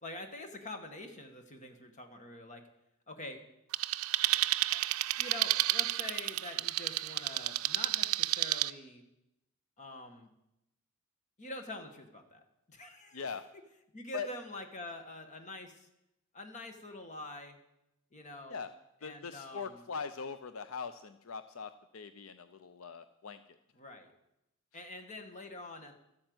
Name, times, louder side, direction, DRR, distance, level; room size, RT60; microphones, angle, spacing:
voice 1, 0.0-2.6 3.1-3.4 4.7-4.9 5.2-9.0 9.8-10.3 11.4-12.4 12.7-13.2 13.9-15.9 16.3-17.6 18.1-18.6 19.0-19.8 23.7-24.1 24.7-25.9, left 1 dB, 35° left, 5 dB, 1.7 m, -46 dB
sound 1, 3.7-8.7, right 15 dB, 70° right, 0.5 m, -31 dB
voice 2, 13.1-13.4 14.1-14.3 18.5-18.7 19.0-23.6, left 5 dB, 70° left, 11 dB, 0.6 m, -41 dB
13.0 x 8.8 x 7.9 m, 0.86 s
head